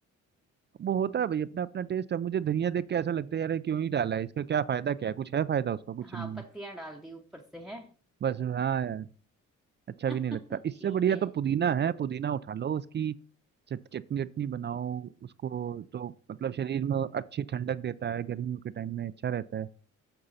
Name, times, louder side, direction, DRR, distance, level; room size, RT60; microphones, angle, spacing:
voice 1, 0.8-6.4 8.2-9.1 10.0-10.4 10.8-13.1 13.7-15.1 15.4-19.7, right 9 dB, 35° right, 0.4 m, -30 dB
voice 2, 6.0-7.9 10.1-11.3, right 1 dB, ahead, 0.9 m, -43 dB
7.9 x 6.7 x 4.1 m
cardioid pair, 90°, 30 cm